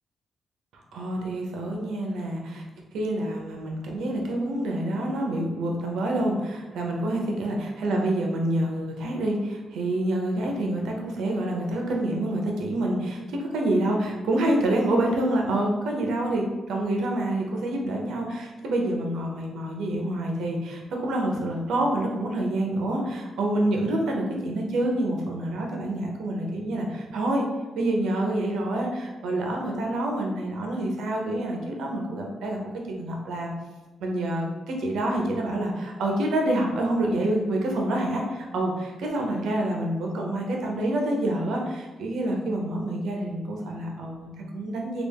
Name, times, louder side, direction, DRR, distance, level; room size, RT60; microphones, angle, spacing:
voice 1, 0.7-2.6 2.9-27.4 27.8-32.6 32.9-33.5 34.0-45.0, right 1 dB, 85° right, 0 dB, 0.7 m, -27 dB
3.4 x 2.4 x 3.4 m, 1.2 s
wide cardioid pair, 160°, 0 cm